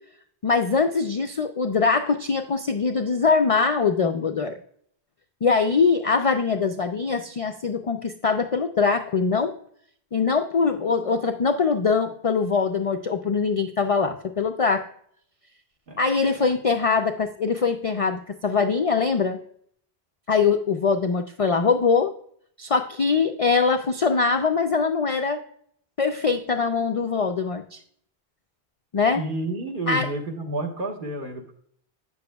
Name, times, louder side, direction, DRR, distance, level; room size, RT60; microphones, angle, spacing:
voice 1, 0.4-4.6 5.4-9.5 10.1-14.8 16.0-19.4 20.3-22.1 22.6-25.4 26.0-27.8 28.9-29.3 29.9-30.1, left 5 dB, 55° left, 6 dB, 0.4 m, -22 dB
voice 2, 29.1-31.6, right 1 dB, 55° right, 1 dB, 1.4 m, -30 dB
8.5 x 6.9 x 2.3 m, 0.64 s
omnidirectional pair, 1.1 m